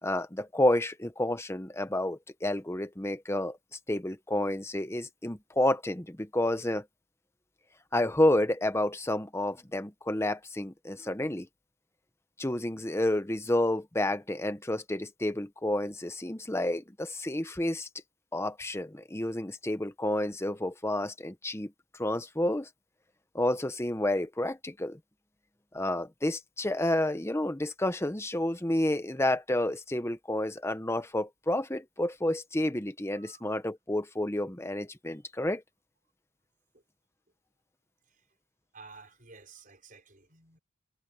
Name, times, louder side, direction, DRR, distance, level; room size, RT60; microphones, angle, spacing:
voice 1, 0.0-3.6 3.9-6.9 7.9-11.5 12.4-17.9 18.3-22.7 23.3-25.0 25.7-35.6, left 1 dB, 10° left, 0.9 m, -30 dB
voice 2, 38.7-40.6, right 4 dB, 40° right, 5.8 m, -53 dB
head